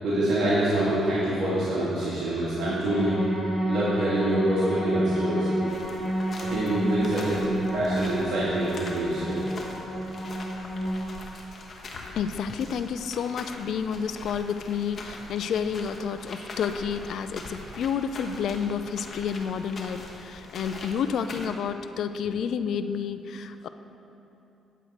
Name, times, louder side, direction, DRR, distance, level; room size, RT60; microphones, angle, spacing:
voice 1, 0.0-3.2 3.7-5.5 6.4-7.5 7.7-9.4, right 1 dB, 70° right, -9 dB, 2.3 m, -26 dB
sound 1, 2.9-11.1, equal, 15° left, 2.1 m, -30 dB
sound 2, 5.7-21.5, left 2 dB, 40° left, 1.3 m, -43 dB
voice 2, 11.9-23.7, left 7 dB, 70° left, 10 dB, 0.4 m, -30 dB
9.2 x 8.2 x 4.4 m, 2.9 s
cardioid pair, 90°, 0 cm